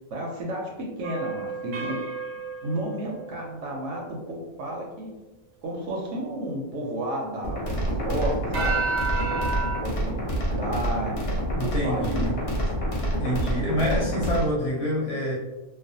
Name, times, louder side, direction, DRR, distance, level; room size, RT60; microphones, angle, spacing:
voice 1, 0.1-2.0 2.6-5.1 5.6-7.7 8.0-8.8 9.8-11.3 11.6-12.6, right 1 dB, 70° right, -1 dB, 0.8 m, -32 dB
sound 1, 1.0-3.9 8.5-9.8, right 4 dB, 85° right, 1.1 m, -31 dB
sound 2, 7.4-14.5, right 1 dB, 55° left, 0.8 m, -27 dB
voice 2, 11.6-12.3 13.2-15.3, equal, 90° left, -4 dB, 1.0 m, -26 dB
2.4 x 2.1 x 2.6 m, 1.1 s
omnidirectional pair, 1.4 m